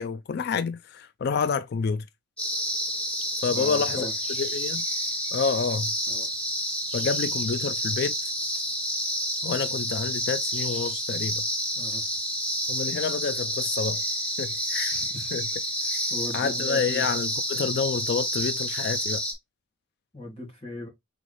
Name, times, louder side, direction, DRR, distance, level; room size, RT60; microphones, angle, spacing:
voice 1, 0.0-2.0 3.4-4.1 4.4-4.8 5.3-5.9 6.9-8.3 9.4-11.4 12.7-14.0 14.4-15.0 15.3-15.5 15.9-16.0 16.3-19.2, left 5 dB, 50° left, 0.3 m, -28 dB
sound 1, 2.4-19.3, equal, 5° left, 1.2 m, -29 dB
voice 2, 3.5-4.1 6.1-6.3 11.8-12.0 14.9-15.3 15.8-17.1 20.1-20.9, left 2 dB, 30° left, 1.8 m, -38 dB
4.0 x 3.5 x 3.2 m
head